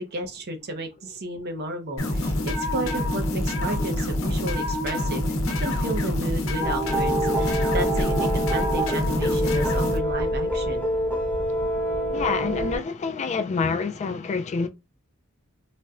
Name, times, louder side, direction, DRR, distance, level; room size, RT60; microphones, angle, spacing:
voice 1, 0.0-10.9, right 1 dB, 50° right, 0.7 m, -33 dB
sound 1, 2.0-10.0, left 1 dB, 75° left, 0.8 m, -26 dB
sound 2, 6.6-12.8, right 1 dB, 10° left, 0.9 m, -26 dB
voice 2, 12.1-14.7, left 5 dB, 35° left, 0.3 m, -27 dB
4.1 x 2.2 x 2.3 m
head